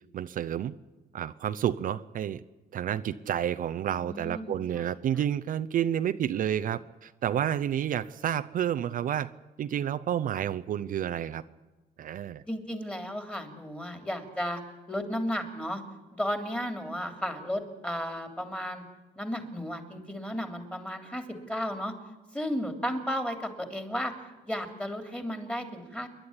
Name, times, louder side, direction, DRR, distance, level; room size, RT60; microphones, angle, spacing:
voice 1, 0.1-0.7 1.1-2.4 2.7-9.3 9.6-11.4 12.0-12.4, right 10 dB, 55° right, 11 dB, 0.7 m, -30 dB
voice 2, 4.0-4.8 12.5-14.6 14.9-15.8 16.1-18.8 19.2-21.9 22.3-24.1 24.4-26.1, equal, 5° left, 6 dB, 3.2 m, -34 dB
28.0 x 11.5 x 9.8 m, 1.2 s
cardioid pair, 110°, 17 cm